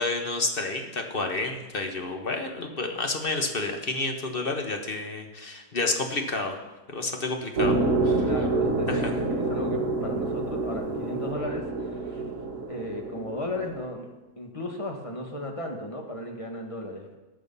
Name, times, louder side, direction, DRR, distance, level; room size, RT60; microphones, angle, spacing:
voice 1, 0.0-6.6 6.9-7.8 8.0-8.2 8.9-9.0, left 3 dB, 40° left, 4 dB, 1.4 m, -30 dB
sound 1, 7.6-13.9, right 3 dB, 55° right, 1.9 m, -27 dB
voice 2, 8.2-12.3 12.7-14.1 14.4-17.2, left 1 dB, 20° left, 2 dB, 1.7 m, -35 dB
18.5 x 6.5 x 5.5 m, 1.1 s
omnidirectional pair, 1.6 m